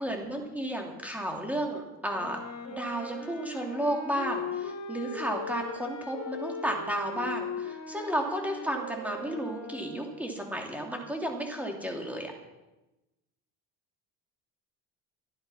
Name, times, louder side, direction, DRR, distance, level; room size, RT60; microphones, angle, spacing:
voice 1, 0.0-2.4 2.7-12.3, right 1 dB, 5° right, 1 dB, 3.0 m, -33 dB
Wind instrument woodwind instrument, 2.1-10.5, left 4 dB, 45° left, 3.5 m, -39 dB
14.0 x 11.0 x 5.8 m, 1.0 s
cardioid pair, 110°, 37 cm